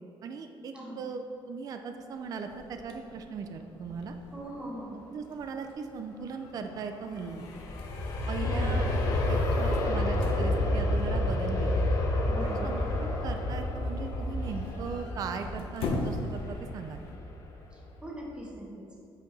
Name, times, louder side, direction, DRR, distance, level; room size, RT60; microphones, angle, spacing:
voice 1, 0.2-4.2 5.1-7.5 8.3-8.9 9.3-11.7 12.4-17.0, right 5 dB, 40° right, 6 dB, 0.4 m, -38 dB
sound 1, 2.1-17.2, left 2 dB, 80° left, 0.8 m, -43 dB
voice 2, 4.3-5.1 8.4-8.8 12.2-12.8 17.7-18.9, equal, 10° right, -3 dB, 1.1 m, -41 dB
Aircraft, 7.0-17.9 18.3-18.4, left 1 dB, 35° left, 0.7 m, -29 dB
8.0 x 4.6 x 4.0 m, 2.6 s
cardioid pair, 175°, 10 cm